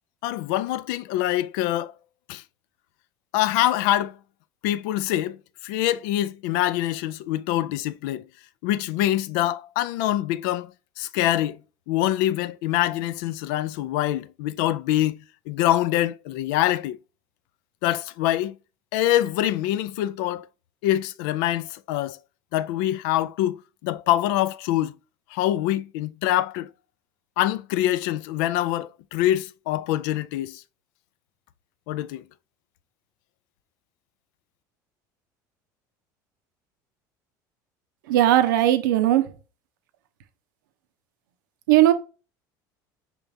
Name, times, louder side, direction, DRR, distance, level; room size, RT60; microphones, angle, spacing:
voice 1, 0.2-1.9 2.3-2.4 3.3-4.2 4.6-8.3 8.6-10.7 11.0-11.6 11.9-17.0 17.8-18.6 18.9-20.5 20.8-22.2 22.5-24.9 25.3-26.7 27.4-30.6 31.9-32.2, left 13 dB, 75° left, 0.4 m, -25 dB
voice 2, 38.1-39.3 41.7-41.9, right 13 dB, 85° right, 0.6 m, -18 dB
5.9 x 3.3 x 2.6 m
supercardioid pair, 85°, 10 cm